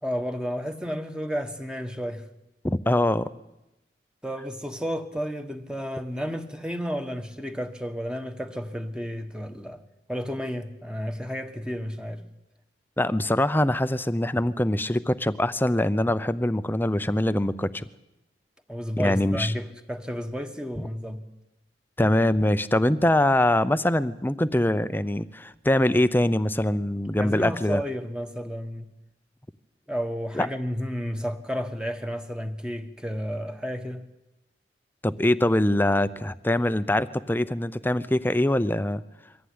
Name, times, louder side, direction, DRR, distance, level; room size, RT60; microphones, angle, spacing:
voice 1, 0.0-2.2 4.2-9.8 10.1-12.2 18.7-21.2 27.2-28.9 29.9-34.0, equal, 5° right, 6 dB, 1.5 m, -32 dB
voice 2, 2.6-3.3 13.0-17.9 19.0-19.5 22.0-27.8 30.3-30.5 35.0-39.0, left 1 dB, 10° left, 14 dB, 0.7 m, -23 dB
23.5 x 15.0 x 9.6 m, 0.95 s
head